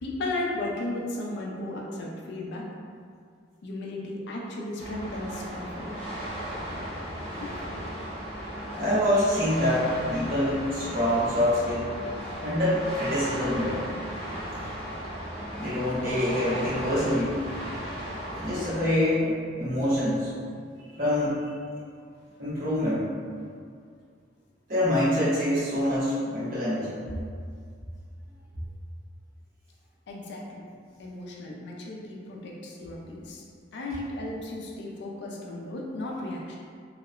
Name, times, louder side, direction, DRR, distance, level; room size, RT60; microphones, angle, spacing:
voice 1, 0.0-2.6 3.6-6.0 7.3-7.7 30.1-30.6 31.0-33.4 33.7-36.6, left 2 dB, 65° left, -2 dB, 0.4 m, -35 dB
sound 1, 4.8-18.9, equal, 30° left, 0.7 m, -36 dB
voice 2, 8.7-11.9 12.4-14.1 15.6-17.3 18.3-20.3 20.9-21.5 22.4-23.1 24.7-27.0, left 1 dB, 50° right, -10 dB, 0.9 m, -26 dB
2.7 x 2.0 x 2.4 m, 2.2 s
head